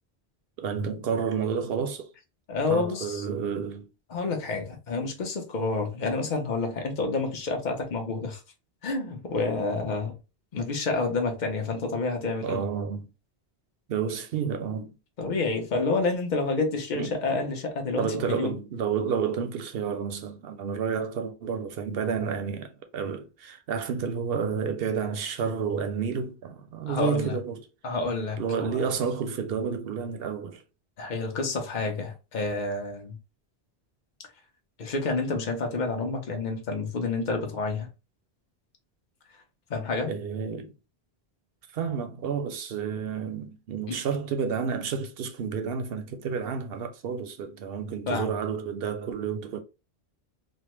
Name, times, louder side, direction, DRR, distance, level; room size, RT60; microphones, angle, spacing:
voice 1, 0.6-2.1 2.7-3.9 12.4-13.1 13.9-14.9 16.9-17.1 18.0-27.6 28.4-30.6 40.1-40.7 41.7-49.6, right 6 dB, 70° right, 0.8 m, -30 dB
voice 2, 2.5-3.3 4.1-8.4 8.8-10.2 10.5-12.6 15.2-18.6 26.9-27.4 27.8-28.9 31.0-33.2 34.8-37.9 39.7-40.1 43.9-44.0 48.1-48.3, left 3 dB, 50° left, 0.9 m, -29 dB
3.3 x 2.1 x 3.0 m
omnidirectional pair, 1.1 m